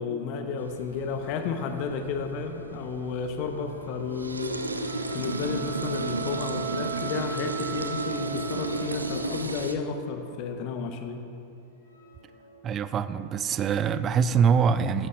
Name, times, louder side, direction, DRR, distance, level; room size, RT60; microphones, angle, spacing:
voice 1, 0.0-4.6 5.1-11.2, left 5 dB, 45° left, 7 dB, 0.8 m, -32 dB
sound 1, 0.6-9.8, right 2 dB, 80° right, 0.5 m, -34 dB
sound 2, 2.0-5.8 7.3-7.4 7.6-11.1 11.6-13.8, equal, 70° left, 1.3 m, -49 dB
sound 3, 4.8-9.3, right 6 dB, 50° right, 2.3 m, -38 dB
voice 2, 12.6-15.1, right 6 dB, 30° right, 14 dB, 0.4 m, -24 dB
14.0 x 11.0 x 2.4 m, 2.5 s
figure-of-eight pair, 90°, 0 cm